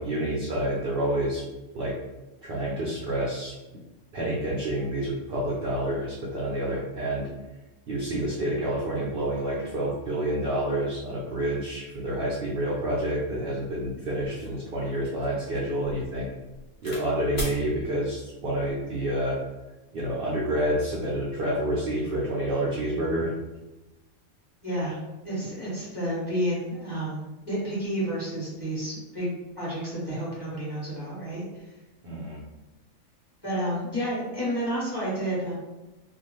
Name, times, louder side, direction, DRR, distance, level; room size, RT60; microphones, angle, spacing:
voice 1, 0.0-1.4 1.7-1.9 2.4-3.5 4.1-7.3 7.9-16.3 16.8-19.4 19.9-23.3 32.0-32.4, right 1 dB, 60° right, -4 dB, 0.6 m, -28 dB
sound 1, 14.2-17.0 17.3-17.6 18.5-18.8, left 1 dB, 40° left, 0.8 m, -39 dB
voice 2, 24.6-25.0 25.2-29.3 29.6-31.7 33.4-35.5, equal, 20° left, -9 dB, 1.2 m, -30 dB
2.6 x 2.3 x 3.0 m, 1.0 s
omnidirectional pair, 1.4 m